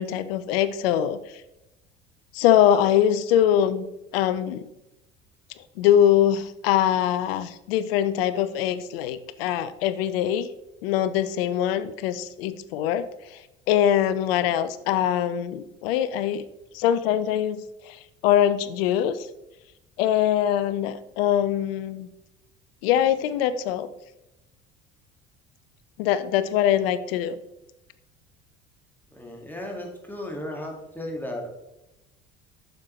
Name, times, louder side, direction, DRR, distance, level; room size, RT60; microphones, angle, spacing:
voice 1, 0.0-1.4 2.3-3.9 4.1-4.7 5.8-10.5 10.8-16.4 16.7-19.3 20.0-22.1 22.8-23.9 26.0-27.4, left 10 dB, 70° left, 14 dB, 0.5 m, -23 dB
voice 2, 29.1-31.5, left 1 dB, 5° left, 0 dB, 1.9 m, -35 dB
7.3 x 6.3 x 3.1 m, 0.91 s
hypercardioid pair, 65°, 31 cm